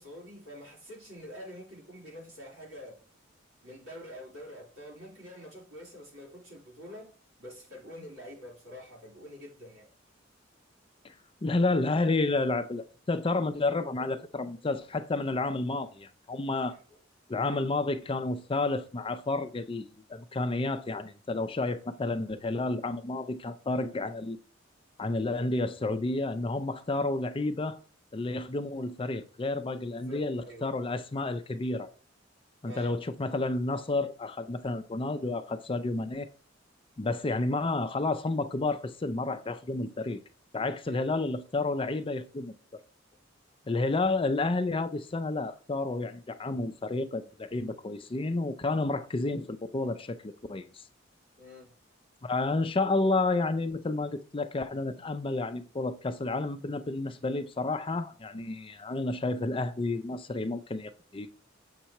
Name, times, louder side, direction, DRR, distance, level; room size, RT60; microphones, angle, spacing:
voice 1, 0.0-3.0 3.6-7.1 7.4-9.9 14.0-14.1 16.5-16.8 29.9-30.7 32.6-32.9 37.3-37.4 40.9-41.1 51.4-51.7, equal, 85° right, 3.8 m, -46 dB
voice 2, 11.4-16.8 17.3-24.4 25.0-27.8 28.1-31.9 32.6-36.3 37.0-40.2 40.5-42.5 43.7-50.8 52.2-61.3, left 2 dB, 25° left, 0.5 m, -30 dB
7.3 x 5.6 x 3.0 m
head